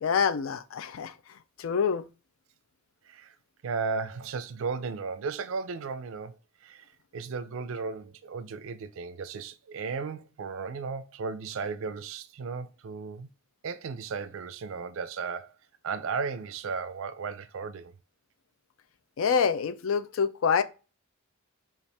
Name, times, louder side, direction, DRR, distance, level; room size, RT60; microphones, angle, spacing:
voice 1, 0.0-1.1 1.6-2.1 19.2-20.6, left 6 dB, 70° left, 0.4 m, -26 dB
voice 2, 3.6-6.4 6.6-13.3 13.6-15.5 15.8-17.9, right 5 dB, 65° right, 0.4 m, -35 dB
5.3 x 2.4 x 3.2 m
head